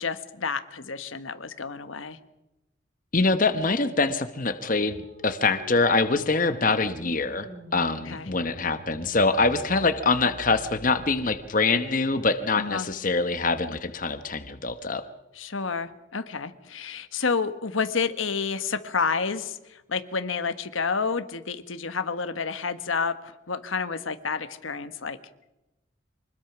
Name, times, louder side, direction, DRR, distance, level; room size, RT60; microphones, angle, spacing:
voice 1, 0.0-2.2 8.1-8.3 12.6-12.9 15.4-25.2, left 5 dB, 90° left, 10 dB, 1.4 m, -30 dB
voice 2, 3.1-15.0, left 3 dB, 40° left, 10 dB, 1.0 m, -24 dB
sound 1, 4.3-11.4, equal, 80° right, 5.9 m, -46 dB
24.5 x 20.5 x 6.0 m, 0.96 s
head